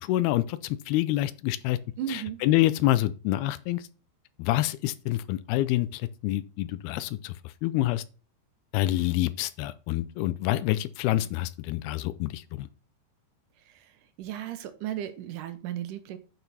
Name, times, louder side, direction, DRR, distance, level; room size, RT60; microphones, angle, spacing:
voice 1, 0.0-1.8 2.1-3.9 4.4-7.3 7.6-8.0 8.7-12.7, left 15 dB, 85° left, 2.6 m, -27 dB
voice 2, 2.0-2.4 13.7-13.9 14.2-16.2, right 11 dB, 75° right, 2.0 m, -35 dB
8.9 x 6.1 x 4.1 m
omnidirectional pair, 4.5 m